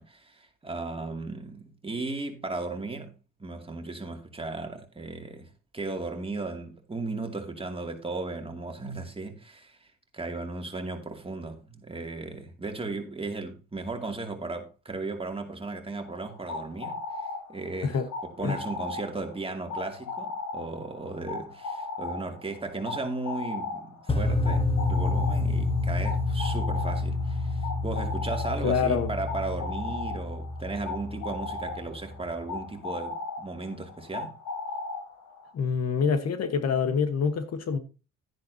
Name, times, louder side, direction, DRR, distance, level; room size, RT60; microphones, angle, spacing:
voice 1, 0.0-3.1 3.4-9.9 10.1-17.0 17.5-34.3, right 3 dB, 20° right, 2.4 m, -36 dB
sound 1, 16.1-35.5, left 3 dB, 75° left, 3.8 m, -37 dB
sound 2, 24.1-32.2, left 2 dB, 20° left, 1.2 m, -29 dB
voice 2, 28.6-29.1 35.5-37.8, left 6 dB, 55° left, 1.3 m, -26 dB
11.0 x 10.0 x 2.8 m
cardioid pair, 90°, 30 cm